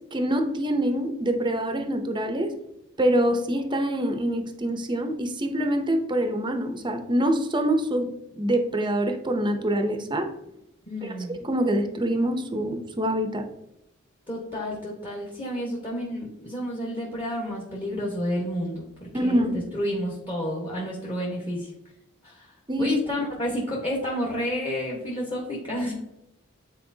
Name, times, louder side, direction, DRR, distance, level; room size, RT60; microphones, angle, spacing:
voice 1, 0.1-2.5 3.0-10.3 11.4-13.5 19.1-19.6 22.7-22.9, right 1 dB, 20° right, 6 dB, 0.7 m, -25 dB
voice 2, 10.9-11.3 14.3-21.7 22.2-25.9, equal, 25° left, -3 dB, 1.2 m, -30 dB
8.7 x 4.3 x 2.7 m, 0.87 s
head